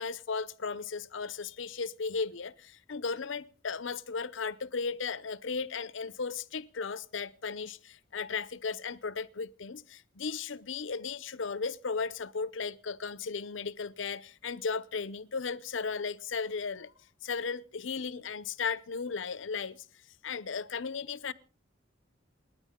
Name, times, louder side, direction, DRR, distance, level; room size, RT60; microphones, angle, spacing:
voice 1, 0.0-16.9 17.2-19.9 20.2-21.3, left 5 dB, 80° left, 0.7 m, -36 dB
28.5 x 9.8 x 3.7 m
head